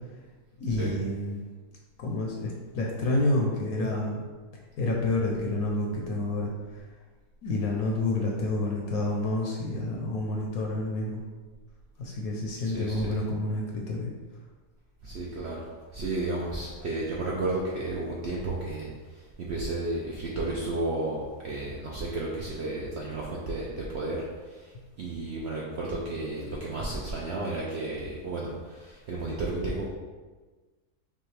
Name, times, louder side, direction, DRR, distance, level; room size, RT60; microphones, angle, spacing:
voice 1, 0.6-1.5 2.0-4.2 4.8-6.5 7.4-11.2 12.0-14.1, left 2 dB, 70° left, -1 dB, 1.0 m, -29 dB
voice 2, 12.6-13.2 15.0-18.9 19.1-24.7 25.0-29.9, right 2 dB, 75° right, -4 dB, 0.6 m, -33 dB
5.5 x 2.3 x 3.2 m, 1.3 s
omnidirectional pair, 1.7 m